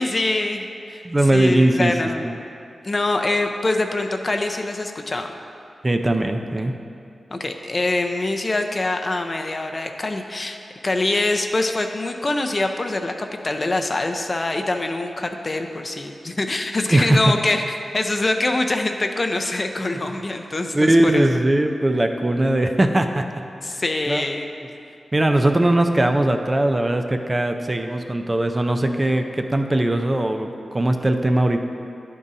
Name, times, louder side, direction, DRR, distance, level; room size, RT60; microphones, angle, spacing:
voice 1, 0.0-1.1 1.3-2.5 2.8-5.3 7.3-10.6 10.8-17.6 17.9-21.3 23.6-24.5, left 2 dB, 35° left, 5 dB, 0.4 m, -24 dB
voice 2, 1.0-1.9 2.2-2.4 5.8-6.7 16.9-17.3 20.7-23.3 24.1-24.2 25.1-31.6, right 1 dB, 25° right, 5 dB, 0.4 m, -20 dB
10.5 x 3.7 x 4.0 m, 2.5 s
wide cardioid pair, 85°, 0 cm